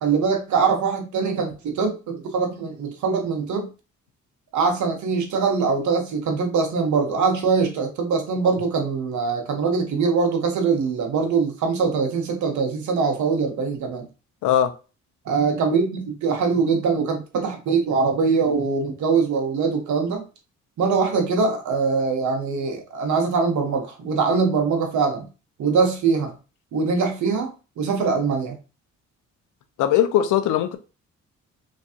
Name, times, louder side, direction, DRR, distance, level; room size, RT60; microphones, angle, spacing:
voice 1, 0.0-3.7 4.5-14.1 15.2-20.2 20.8-25.3 25.6-26.3 26.7-28.6, right 5 dB, 70° right, 1.1 m, -22 dB
voice 2, 14.4-14.7 29.8-30.8, left 10 dB, 85° left, 0.6 m, -19 dB
3.5 x 3.1 x 2.7 m
cardioid pair, 90°, 30 cm